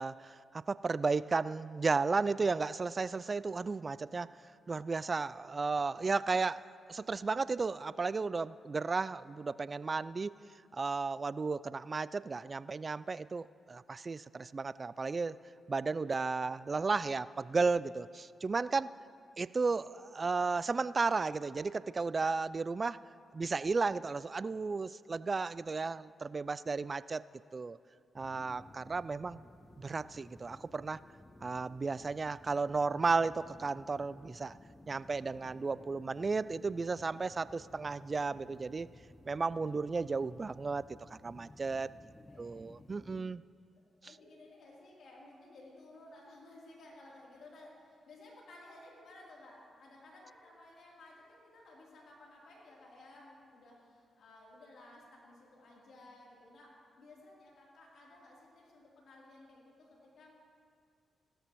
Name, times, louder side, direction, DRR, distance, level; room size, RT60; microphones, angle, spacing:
voice 1, 0.0-4.3 4.7-6.6 6.9-10.4 10.7-15.4 15.7-18.9 19.4-23.0 23.3-27.2 27.5-27.8 28.2-29.4 29.8-31.0 31.4-34.6 34.9-38.9 39.3-40.8 41.1-41.9 42.4-43.4, right 4 dB, 40° right, 18 dB, 0.3 m, -34 dB
sound 1, 28.1-43.2, left 1 dB, 20° left, 0.8 m, -57 dB
voice 2, 28.2-28.7 42.3-42.6 44.0-60.3, left 2 dB, 70° left, -4 dB, 3.3 m, -56 dB
16.0 x 13.0 x 3.1 m, 2.3 s
hypercardioid pair, 45°, 0 cm